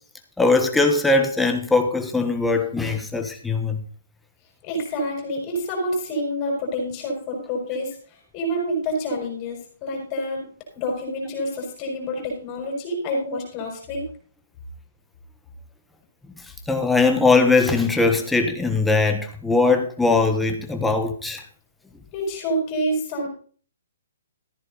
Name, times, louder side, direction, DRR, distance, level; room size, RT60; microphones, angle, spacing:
voice 1, 0.4-3.8 16.7-21.4, left 3 dB, 5° left, 1.3 m, -20 dB
voice 2, 4.6-14.0 22.1-23.3, equal, 20° left, 6.2 m, -28 dB
14.5 x 9.8 x 4.1 m
hypercardioid pair, 165°, 0 cm